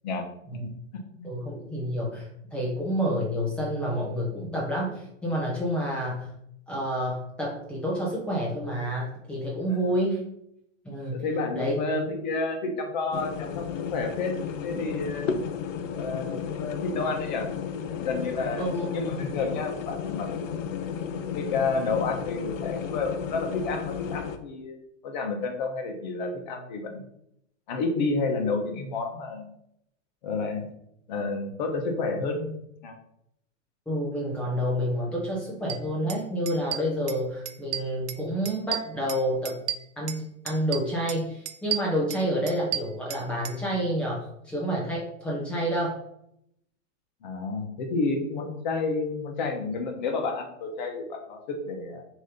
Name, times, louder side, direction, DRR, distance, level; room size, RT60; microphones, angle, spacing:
voice 1, 0.5-1.3 2.6-2.7 9.7-10.0 11.1-13.6 13.9-14.3 14.6-15.3 15.9-17.5 18.0-20.6 21.3-27.0 27.7-29.5 30.2-30.7 31.1-32.9 47.2-52.0, left 3 dB, 35° left, 2 dB, 1.2 m, -30 dB
voice 2, 1.2-6.3 6.7-10.2 10.8-11.2 11.5-11.8 18.6-18.9 33.9-39.6 40.0-46.0, equal, 5° left, -5 dB, 0.8 m, -29 dB
sound 1, 13.1-24.4, left 7 dB, 70° left, 0.9 m, -33 dB
sound 2, 35.7-35.8 36.1-36.2 36.5-37.2 37.5-38.2 38.5-40.2 40.5-41.2 41.5-43.6, right 10 dB, 60° right, 0.6 m, -33 dB
6.7 x 3.2 x 5.3 m, 0.75 s
supercardioid pair, 175°, 40 cm